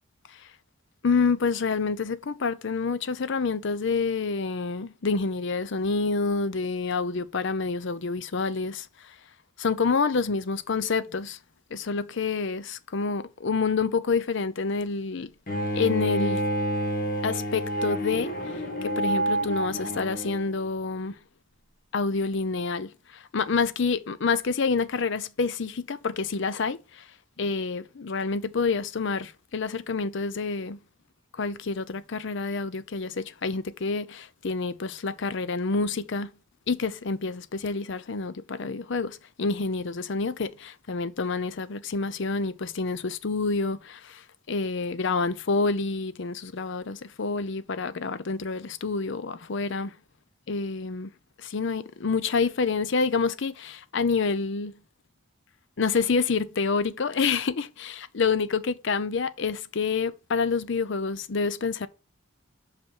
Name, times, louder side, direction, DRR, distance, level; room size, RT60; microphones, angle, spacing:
voice 1, 1.0-8.9 9.6-11.4 11.7-15.3 15.7-16.4 17.2-18.3 18.8-21.2 21.9-22.9 23.3-26.8 27.4-30.8 31.4-36.3 36.7-44.2 44.5-49.9 50.5-51.1 51.4-54.7 55.8-61.9, left 4 dB, 60° left, 0.6 m, -28 dB
Bowed string instrument, 15.5-20.5, right 1 dB, 45° left, 1.9 m, -28 dB
5.9 x 5.6 x 5.3 m
head